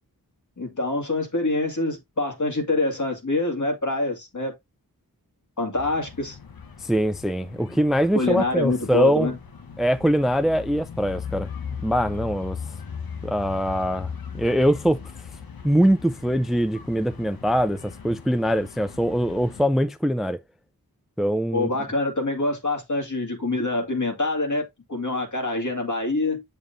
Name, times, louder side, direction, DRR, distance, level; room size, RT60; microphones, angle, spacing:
voice 1, 0.6-4.5 5.6-6.4 8.1-9.4 21.5-26.4, left 2 dB, 55° left, 2.3 m, -25 dB
sound 1, 5.7-19.6, left 6 dB, 75° left, 1.1 m, -39 dB
voice 2, 6.8-9.3 9.8-11.5 11.8-12.6 13.2-14.1 14.3-15.0 15.6-17.8 18.0-20.4 21.2-21.7, equal, ahead, 0.5 m, -22 dB
7.2 x 6.7 x 2.6 m
cardioid pair, 45°, 36 cm